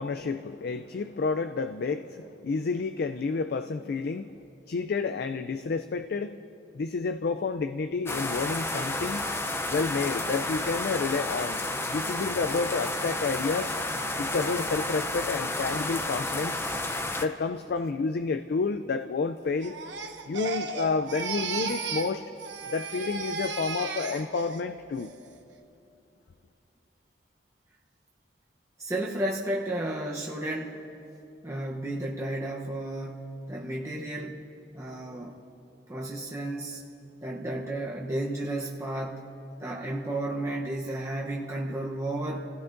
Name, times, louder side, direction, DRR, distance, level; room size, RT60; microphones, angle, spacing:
voice 1, 0.0-4.3 4.7-6.4 6.7-9.3 9.7-11.6 11.9-13.7 14.2-16.6 17.2-19.8 20.3-22.2 22.7-25.1, left 4 dB, 60° left, 9 dB, 0.4 m, -30 dB
sound 1, 8.1-17.3, left 2 dB, 15° left, 0.6 m, -31 dB
Crying sobbing, 19.6-22.1 22.4-24.6 25.0-25.4, right 4 dB, 85° right, 1.0 m, -35 dB
voice 2, 28.8-30.8 31.4-34.4 34.7-35.3 35.9-36.8 37.2-39.3 39.6-42.4, right 1 dB, 15° right, -3 dB, 0.9 m, -33 dB
28.0 x 16.0 x 2.6 m, 2.7 s
head